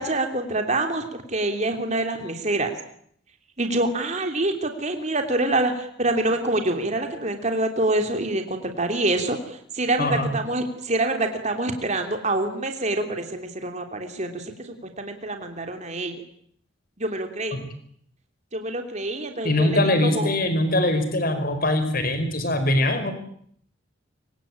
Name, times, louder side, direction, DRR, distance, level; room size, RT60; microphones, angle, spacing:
voice 1, 0.0-2.7 3.6-16.1 17.0-17.6 18.5-20.3, right 2 dB, 35° right, 5 dB, 3.2 m, -26 dB
voice 2, 10.0-10.3 17.5-17.6 19.4-23.1, left 1 dB, 45° left, 9 dB, 5.4 m, -22 dB
26.0 x 24.5 x 8.9 m, 0.66 s
head